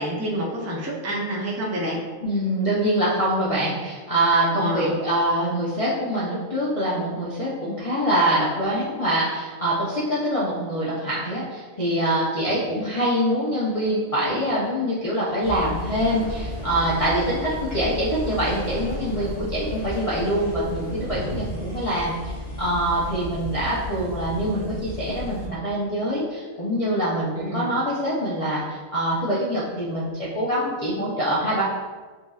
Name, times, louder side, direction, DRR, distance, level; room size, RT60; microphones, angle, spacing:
voice 1, 0.0-2.0 4.5-5.0 27.4-27.7, equal, 20° right, -3 dB, 0.4 m, -28 dB
voice 2, 2.2-22.2 22.6-31.6, right 1 dB, 35° left, -9 dB, 0.6 m, -24 dB
sound 1, 15.4-25.5, left 1 dB, 50° left, 1.1 m, -33 dB
6.7 x 2.6 x 2.4 m, 1.4 s
omnidirectional pair, 1.5 m